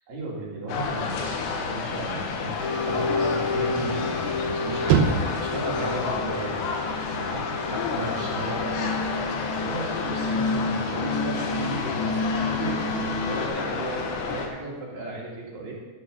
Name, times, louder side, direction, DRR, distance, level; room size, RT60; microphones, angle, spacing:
voice 1, 0.1-8.9 9.5-12.9 13.2-15.7, right 2 dB, 50° right, -5 dB, 3.3 m, -35 dB
sound 1, 0.7-14.5, left 5 dB, 80° left, 3.1 m, -31 dB
sound 2, 1.6-9.9, right 7 dB, 75° right, 2.4 m, -32 dB
sound 3, 2.6-13.5, left 3 dB, 60° left, 2.6 m, -30 dB
12.5 x 6.6 x 5.4 m, 1.3 s
omnidirectional pair, 4.9 m